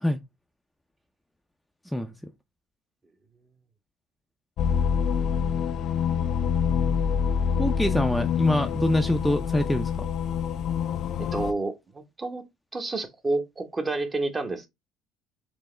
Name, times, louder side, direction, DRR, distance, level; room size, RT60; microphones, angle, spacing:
sound 1, 4.6-11.5, left 7 dB, 60° left, 0.4 m, -26 dB
voice 1, 7.6-10.1, left 1 dB, 5° left, 0.5 m, -25 dB
voice 2, 11.2-12.4 12.7-14.7, right 2 dB, 25° right, 1.0 m, -29 dB
4.5 x 2.8 x 3.2 m
supercardioid pair, 90°, 0 cm